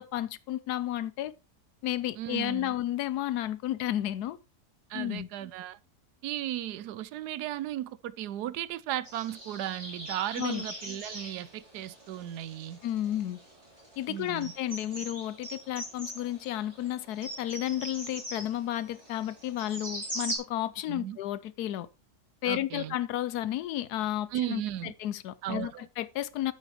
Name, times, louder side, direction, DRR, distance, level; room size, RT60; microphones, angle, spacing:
voice 1, 0.0-1.3 1.8-4.4 4.9-5.3 10.4-10.6 12.8-13.4 14.0-21.9 22.4-26.5, left 13 dB, 75° left, 1.2 m, -32 dB
voice 2, 2.2-2.7 4.9-5.8 6.2-12.8 14.1-14.5 20.9-21.2 22.4-23.0 24.3-24.9 25.4-25.8, right 12 dB, 80° right, 1.2 m, -35 dB
sound 1, 9.0-20.4, right 1 dB, 20° right, 3.6 m, -42 dB
9.7 x 8.4 x 3.0 m
omnidirectional pair, 1.7 m